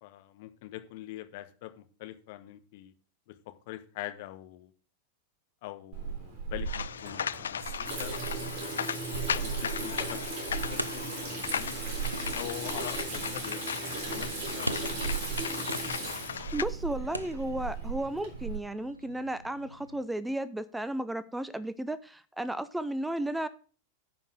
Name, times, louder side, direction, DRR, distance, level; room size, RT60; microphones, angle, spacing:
voice 1, 0.0-2.9 3.3-3.4 3.7-4.7 5.6-8.2 8.4-10.2 10.6-11.8 12.3-13.6 14.1-15.0, left 15 dB, 50° left, 9 dB, 1.1 m, -44 dB
Water tap faucet / Sink (filling or washing), 5.9-18.6, right 4 dB, 40° right, 3.6 m, -36 dB
sound 1, 6.7-16.7, left 8 dB, 65° left, 0.4 m, -37 dB
sound 2, 9.1-20.0, equal, 90° right, 0.5 m, -44 dB
voice 2, 16.5-23.5, right 1 dB, 5° right, 16 dB, 0.5 m, -34 dB
9.6 x 5.4 x 6.5 m, 0.39 s
figure-of-eight pair, 90°, 0 cm